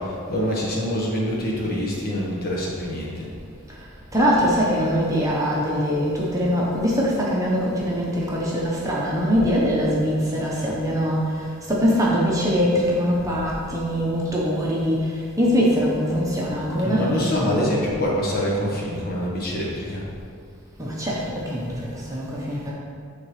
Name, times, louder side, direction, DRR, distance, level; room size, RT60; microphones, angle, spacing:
voice 1, 0.0-3.3 16.8-20.1, equal, 45° left, -4 dB, 1.3 m, -26 dB
voice 2, 4.1-17.7 20.8-22.7, equal, 15° right, -5 dB, 0.9 m, -22 dB
9.5 x 3.9 x 3.2 m, 2.2 s
head